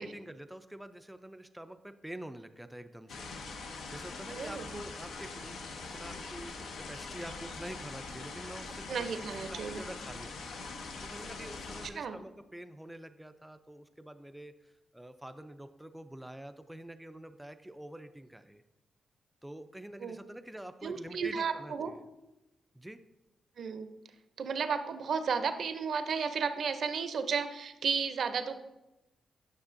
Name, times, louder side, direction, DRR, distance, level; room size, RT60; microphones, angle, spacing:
voice 1, 0.0-3.3 3.9-6.5 6.9-9.1 9.5-10.7 11.0-18.6 19.4-22.0 22.7-23.0, right 1 dB, 5° right, 10 dB, 0.3 m, -47 dB
sound 1, 3.1-11.9, left 3 dB, 85° left, 0.7 m, -43 dB
voice 2, 4.3-4.8 8.9-9.8 11.9-12.2 20.0-20.2 20.8-21.9 23.6-23.9 24.4-28.6, right 6 dB, 65° right, 9 dB, 0.5 m, -33 dB
9.6 x 6.1 x 2.6 m, 0.97 s
cardioid pair, 100°, 0 cm